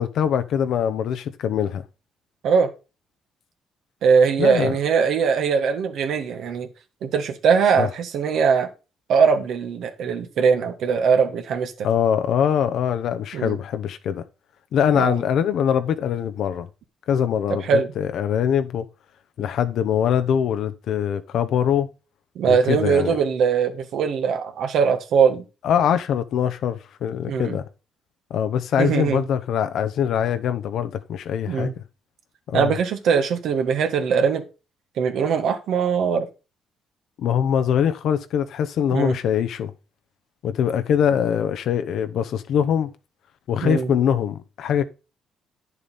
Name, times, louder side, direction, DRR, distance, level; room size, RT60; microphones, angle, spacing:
voice 1, 0.0-1.8 4.4-4.7 7.8-7.9 11.8-14.2 14.7-16.7 17.1-18.8 19.4-21.9 22.5-23.2 25.6-27.7 28.3-31.7 32.5-32.8 37.2-39.7 40.4-42.9 43.5-44.8, left 8 dB, 75° left, 0.9 m, -23 dB
voice 2, 4.0-6.7 7.0-8.7 9.1-11.9 13.3-13.6 14.9-15.2 17.7-17.9 22.3-25.4 27.3-27.6 28.8-29.2 31.5-31.7 32.5-34.4 35.0-36.3 38.9-39.2 43.6-43.9, right 6 dB, 75° right, 1.5 m, -21 dB
9.2 x 6.9 x 4.1 m
cardioid pair, 90°, 0 cm